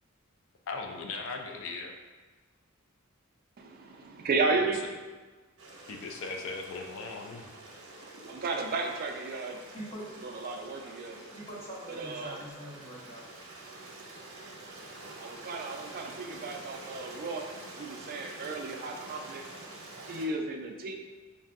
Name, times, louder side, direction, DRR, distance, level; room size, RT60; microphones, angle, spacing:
voice 1, 0.7-1.9 6.0-7.4, left 4 dB, 65° left, 2 dB, 0.4 m, -38 dB
voice 2, 3.6-4.8 8.0-9.6 10.2-11.2 11.9-12.4 15.2-19.4 20.1-20.9, right 3 dB, 45° right, 3 dB, 0.4 m, -34 dB
Stream, 5.6-20.3, right 2 dB, 65° right, 0.8 m, -47 dB
voice 3, 9.7-10.1 11.3-13.2, equal, 30° left, -5 dB, 0.9 m, -43 dB
5.3 x 2.6 x 2.4 m, 1.3 s
head